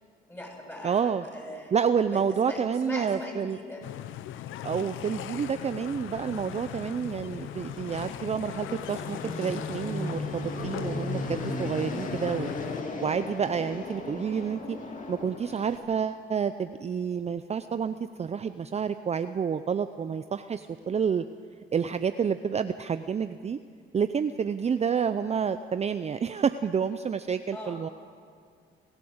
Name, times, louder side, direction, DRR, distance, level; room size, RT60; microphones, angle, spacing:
voice 1, 0.3-1.7 2.1-3.8 27.5-27.8, left 1 dB, 10° left, 0 dB, 7.0 m, -40 dB
voice 2, 0.8-1.3 1.7-3.6 4.6-12.5 13.0-14.8 15.1-21.2 21.7-23.6 23.9-27.9, right 7 dB, 35° right, 10 dB, 0.5 m, -29 dB
sound 1, 3.8-12.8, left 11 dB, 80° left, 0.7 m, -39 dB
Fixed-wing aircraft airplane, 5.5-15.8, left 3 dB, 40° left, 2.5 m, -37 dB
28.0 x 12.5 x 8.0 m, 2.1 s
cardioid pair, 90°, 20 cm